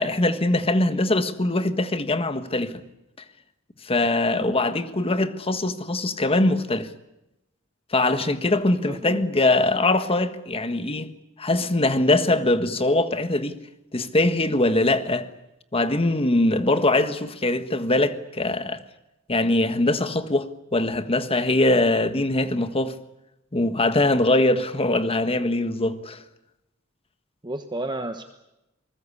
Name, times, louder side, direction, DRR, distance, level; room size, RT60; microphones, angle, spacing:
voice 1, 0.0-2.8 3.8-6.9 7.9-11.1 11.4-13.6 13.9-15.3 15.7-18.8 19.3-20.5 20.7-23.0 23.5-26.2, left 2 dB, 30° left, 1.4 m, -22 dB
voice 2, 8.8-9.3 27.4-28.2, right 1 dB, 20° right, 1.2 m, -32 dB
27.5 x 20.0 x 8.5 m
head